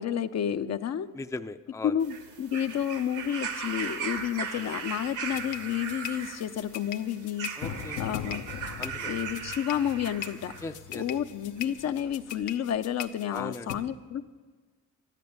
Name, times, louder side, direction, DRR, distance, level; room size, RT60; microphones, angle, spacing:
voice 1, 0.0-1.1 1.8-7.5 8.0-8.4 9.1-10.5 10.9-14.3, left 9 dB, 60° left, 9 dB, 0.7 m, -30 dB
voice 2, 1.1-2.0 4.4-4.7 7.6-8.1 8.8-9.1 10.6-11.0 13.3-13.8, left 3 dB, 10° left, 9 dB, 0.5 m, -38 dB
sound 1, 2.0-10.7 11.6-11.7, right 6 dB, 80° right, 2.0 m, -38 dB
sound 2, 5.3-13.7, left 9 dB, 80° left, 1.0 m, -39 dB
13.0 x 11.0 x 9.4 m, 1.4 s
cardioid pair, 90°, 30 cm